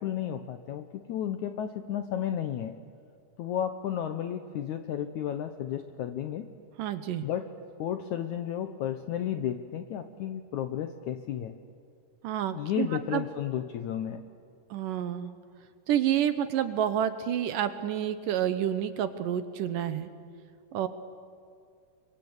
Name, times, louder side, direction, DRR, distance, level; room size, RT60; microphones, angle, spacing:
voice 1, 0.0-2.7 3.4-6.5 7.2-7.5 7.8-11.6 12.5-14.2, left 10 dB, 75° left, 8 dB, 1.8 m, -33 dB
voice 2, 6.8-7.2 12.2-12.9 13.1-13.3 14.7-15.3 15.9-20.1 20.7-20.9, right 10 dB, 70° right, 11 dB, 2.3 m, -29 dB
29.5 x 24.5 x 8.1 m, 2.3 s
omnidirectional pair, 4.5 m